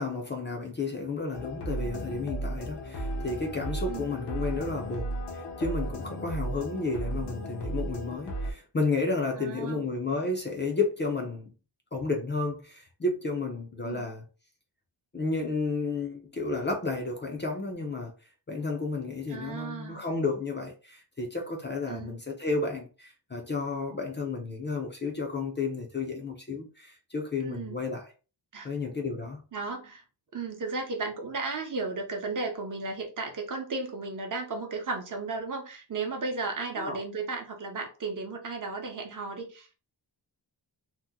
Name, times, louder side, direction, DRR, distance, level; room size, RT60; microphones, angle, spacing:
voice 1, 0.0-11.5 11.9-14.2 15.1-18.1 18.5-28.1 28.6-29.4 36.8-37.0, left 3 dB, 25° left, 0.5 m, -32 dB
sound 1, 1.3-8.5, right 1 dB, 70° left, 0.8 m, -35 dB
voice 2, 3.9-4.2 9.4-9.9 13.8-14.1 19.3-20.0 21.9-22.2 27.4-27.8 28.5-28.7 29.5-30.0 30.3-39.7, right 3 dB, 45° right, 0.7 m, -35 dB
2.8 x 2.0 x 3.5 m
wide cardioid pair, 175°, 43 cm